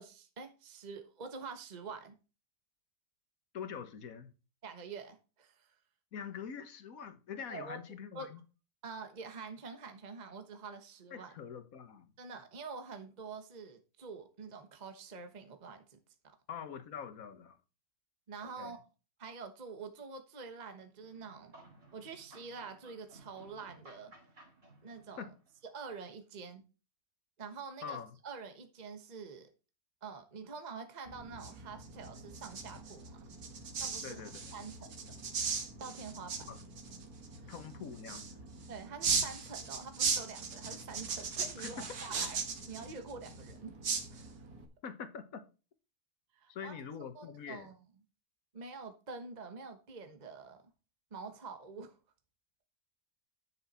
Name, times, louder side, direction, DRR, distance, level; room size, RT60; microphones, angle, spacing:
voice 1, 0.0-2.2 4.6-5.7 7.5-7.8 8.1-8.3 8.8-11.3 12.2-16.0 18.3-18.8 19.2-21.5 21.9-24.1 24.8-25.3 25.7-26.6 27.4-29.5 30.0-33.2 33.8-34.2 34.5-34.9 35.8-36.3 37.4-37.5 38.7-42.4 42.7-44.3 46.3-46.8 47.1-47.8 48.5-50.6 51.1-52.0, right 4 dB, 30° right, 1.2 m, -46 dB
voice 2, 3.5-4.3 6.1-8.4 11.1-12.1 16.5-17.6 18.6-18.8 25.2-25.3 27.8-28.1 34.0-34.5 36.5-36.6 37.5-38.4 41.6-41.8 44.8-45.4 46.5-47.7, left 7 dB, 60° left, 1.6 m, -44 dB
sound 1, 21.0-25.6, right 2 dB, 50° right, 3.1 m, -59 dB
sound 2, 31.1-44.6, right 5 dB, 70° right, 1.9 m, -38 dB
10.5 x 6.4 x 4.3 m
omnidirectional pair, 1.7 m